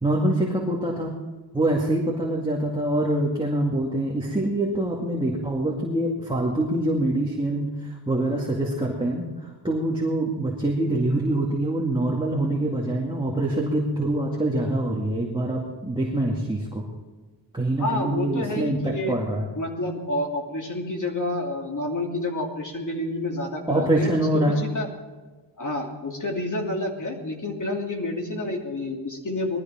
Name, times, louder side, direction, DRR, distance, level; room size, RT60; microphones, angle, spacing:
voice 1, 0.0-1.1 1.5-16.8 17.5-19.5 23.7-24.6, right 1 dB, 10° right, -2 dB, 2.2 m, -25 dB
voice 2, 17.8-19.2 19.5-24.1 24.5-24.9 25.6-29.6, left 1 dB, 45° left, 0 dB, 3.0 m, -29 dB
19.5 x 13.0 x 4.4 m, 1.3 s
wide cardioid pair, 110°, 43 cm